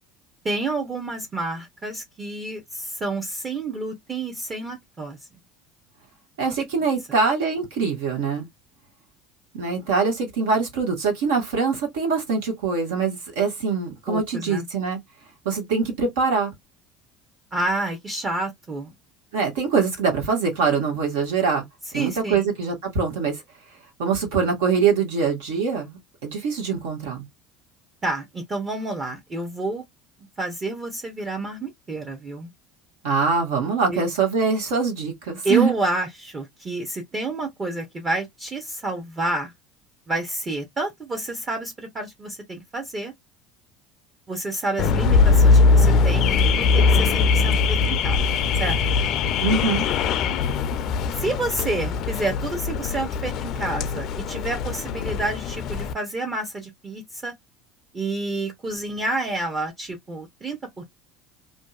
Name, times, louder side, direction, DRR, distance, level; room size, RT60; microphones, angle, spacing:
voice 1, 0.4-5.2 14.1-14.7 17.5-18.9 21.9-22.5 28.0-29.8 30.4-32.5 33.9-34.0 35.4-39.5 40.1-43.1 44.3-49.0 51.2-57.3 57.9-60.8, right 2 dB, 30° right, 0.7 m, -29 dB
voice 2, 6.4-8.5 9.5-15.0 15.4-16.5 19.3-21.6 21.9-23.4 24.0-27.2 33.0-35.7 49.4-49.9, right 5 dB, 85° right, 1.2 m, -23 dB
Car / Alarm, 44.8-55.9, left 4 dB, 55° left, 0.3 m, -21 dB
2.6 x 2.3 x 2.3 m
supercardioid pair, 95°, 0 cm